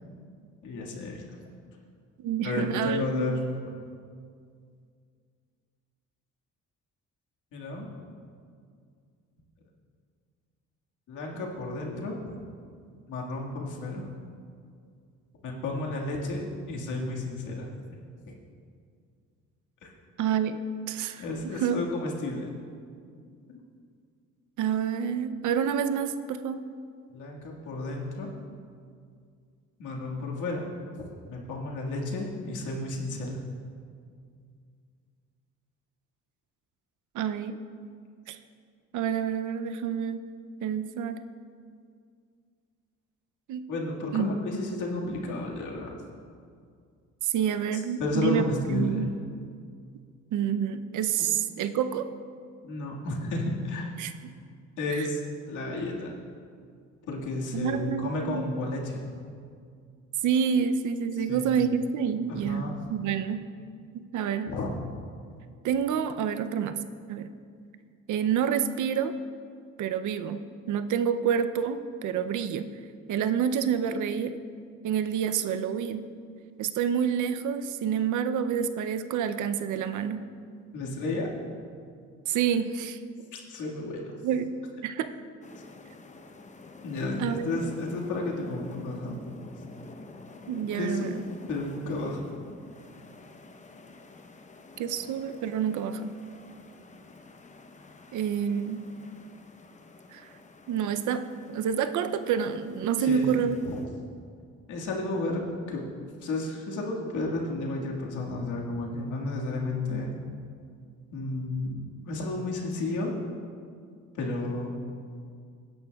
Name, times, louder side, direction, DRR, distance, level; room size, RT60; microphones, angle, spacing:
voice 1, 0.6-1.2 2.4-3.7 7.5-7.9 11.1-12.2 13.1-14.1 15.4-16.4 16.7-18.0 18.3-18.4 19.8-19.9 21.2-22.5 27.1-28.3 29.8-30.7 31.0-33.4 43.7-46.0 47.7-49.1 51.2-51.3 52.6-53.9 54.8-55.2 55.5-56.1 57.1-59.1 61.1-61.6 62.3-62.8 64.5-64.7 80.7-81.3 83.3-84.1 86.8-89.2 90.7-91.0 91.5-92.2 103.0-103.8 104.7-105.4 105.7-105.8 106.2-110.2 111.1-113.1 114.1-114.8, left 2 dB, 80° left, -2 dB, 1.9 m, -32 dB
voice 2, 2.2-3.3 20.2-20.6 20.9-21.8 24.6-26.6 37.1-37.6 38.3-38.4 38.9-40.2 40.6-41.2 43.5-43.7 44.1-44.3 47.2-48.4 48.7-49.1 50.3-52.1 54.0-54.1 54.9-55.1 57.5-58.5 60.2-63.4 64.1-64.5 65.6-66.8 67.1-67.3 68.1-69.1 69.8-72.7 73.1-74.4 74.8-76.1 76.6-80.3 82.3-83.0 84.2-84.5 84.8-85.1 87.2-87.5 90.5-91.2 94.8-96.2 98.1-98.8 100.1-100.3 100.7-103.6, right 8 dB, 75° right, 10 dB, 0.6 m, -28 dB
sound 1, 85.4-103.9, left 3 dB, 25° left, 0.8 m, -49 dB
16.0 x 10.5 x 2.3 m, 2.2 s
cardioid pair, 90°, 30 cm